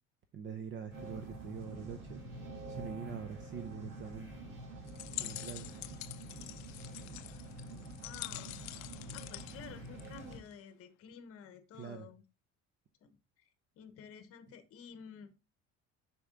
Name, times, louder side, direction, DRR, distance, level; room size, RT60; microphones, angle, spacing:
voice 1, 0.3-2.2 2.7-4.4 5.2-5.8 11.7-12.1, right 7 dB, 35° right, 0.7 m, -44 dB
sound 1, 0.9-10.4, right 1 dB, 70° right, 3.7 m, -47 dB
sound 2, 4.9-10.5, left 19 dB, 60° left, 0.5 m, -46 dB
voice 2, 8.0-8.5 9.1-12.2 13.0-13.5 13.7-15.3, left 7 dB, 45° left, 1.1 m, -52 dB
6.8 x 6.1 x 3.8 m
cardioid pair, 165°, 32 cm